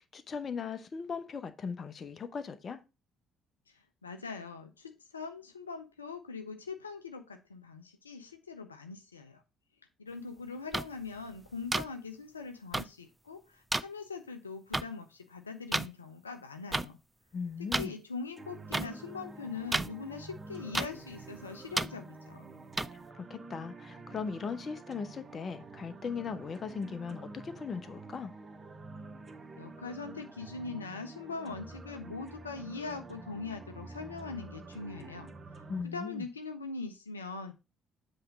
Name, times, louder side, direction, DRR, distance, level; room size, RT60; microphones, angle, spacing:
voice 1, 0.0-2.8 17.3-17.9 22.9-28.3 35.7-36.3, left 5 dB, 40° left, 0.7 m, -38 dB
voice 2, 3.7-9.4 10.0-17.0 17.8-22.4 29.6-35.3 35.8-37.5, left 4 dB, 85° left, 0.4 m, -42 dB
sound 1, 10.7-10.8 11.7-11.8 12.7-12.8 13.7-13.8 14.7-14.8 15.7-15.9 16.7-16.8 17.7-17.9 18.7-18.8 19.7-19.9 20.7-20.9 21.7-21.9 22.8-22.9, right 2 dB, 15° right, 0.4 m, -29 dB
sound 2, 18.4-35.8, right 3 dB, 30° right, 0.9 m, -48 dB
7.7 x 3.2 x 5.1 m
figure-of-eight pair, 50°, 0 cm